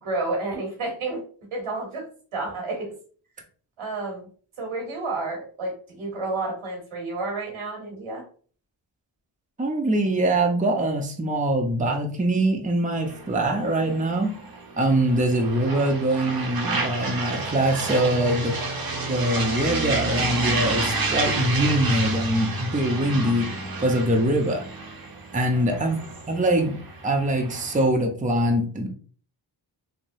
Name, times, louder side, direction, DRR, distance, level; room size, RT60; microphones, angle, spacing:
voice 1, 0.0-1.2 1.5-2.0 2.3-2.9 3.8-4.3 4.6-8.2 24.2-24.5 25.5-25.9, right 2 dB, 85° right, 0 dB, 1.3 m, -31 dB
voice 2, 9.6-14.4 14.8-18.6 19.1-23.5 23.8-24.6 25.3-26.8 27.0-28.9, right 1 dB, 15° right, 2 dB, 0.6 m, -23 dB
sound 1, 13.0-27.9, right 3 dB, 50° right, 0.8 m, -30 dB
3.1 x 2.2 x 2.6 m, 0.43 s
cardioid pair, 40°, 48 cm